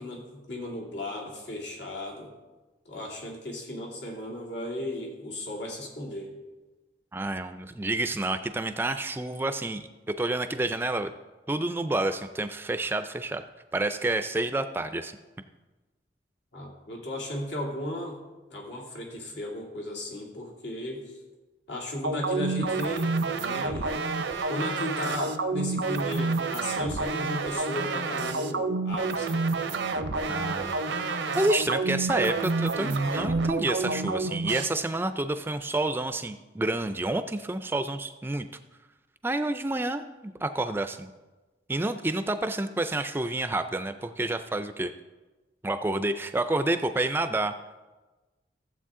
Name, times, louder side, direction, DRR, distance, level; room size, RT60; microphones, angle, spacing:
voice 1, 0.0-2.3 2.8-6.3 16.5-18.2 18.5-21.2 21.7-24.0 24.5-29.4, left 1 dB, 80° left, -1 dB, 2.5 m, -35 dB
voice 2, 7.1-9.9 10.2-11.1 11.5-13.4 13.7-15.2 30.3-30.8 31.3-38.5 39.2-41.1 41.7-44.9 45.6-47.5, right 2 dB, 10° right, 9 dB, 0.3 m, -29 dB
sound 1, 22.0-34.7, right 3 dB, 85° right, 0.6 m, -29 dB
14.5 x 7.7 x 3.7 m, 1.2 s
head